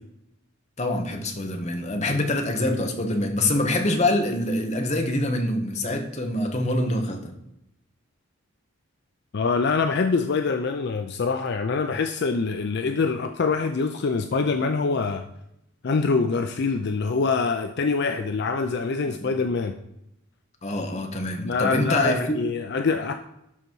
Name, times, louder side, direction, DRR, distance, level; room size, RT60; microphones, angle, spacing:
voice 1, 0.8-7.3 19.1-19.3 20.6-22.4, left 1 dB, 35° left, 3 dB, 1.1 m, -25 dB
voice 2, 9.3-15.2 15.8-19.8 21.4-23.1, left 4 dB, 50° left, 7 dB, 0.4 m, -25 dB
12.0 x 4.0 x 4.6 m, 0.82 s
head